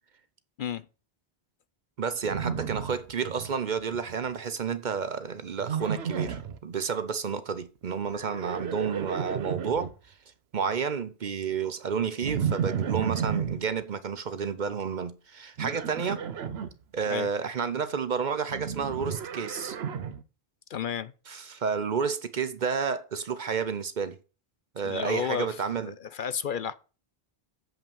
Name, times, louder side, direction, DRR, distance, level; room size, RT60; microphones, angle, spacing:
voice 1, 2.0-9.9 10.5-16.2 16.9-19.8 21.3-24.2 24.8-26.0, right 6 dB, 50° right, 0.8 m, -31 dB
Livestock farm animals working animals, 2.2-3.5 3.8-4.3 5.6-6.6 8.2-9.9 12.2-13.6 15.6-16.7 18.5-20.2, right 7 dB, 80° right, 1.0 m, -32 dB
voice 2, 20.7-21.1 24.8-26.7, left 8 dB, 60° left, 0.7 m, -32 dB
7.6 x 5.6 x 6.9 m
omnidirectional pair, 1.1 m